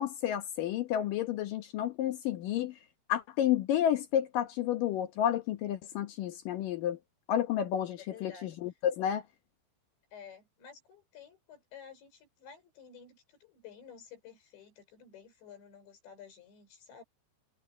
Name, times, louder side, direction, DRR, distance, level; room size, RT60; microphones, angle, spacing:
voice 1, 0.0-2.7 3.1-7.0 7.3-9.2, left 10 dB, 70° left, 2.2 m, -31 dB
voice 2, 8.0-8.6 10.1-17.0, left 7 dB, 85° left, 7.7 m, -52 dB
omnidirectional pair, 5.0 m